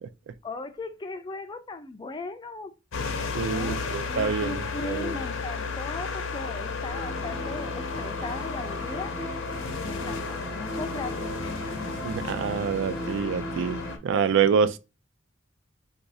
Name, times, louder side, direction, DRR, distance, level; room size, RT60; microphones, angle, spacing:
voice 1, 0.4-2.7 3.4-9.1 9.8-11.3, left 3 dB, 20° left, 0.4 m, -38 dB
sound 1, 2.9-14.0, left 4 dB, 75° left, 0.6 m, -33 dB
voice 2, 3.3-5.2 12.0-14.8, right 6 dB, 65° right, 0.3 m, -26 dB
sound 2, 6.9-13.9, right 1 dB, 45° right, 1.0 m, -37 dB
2.5 x 2.3 x 4.0 m
head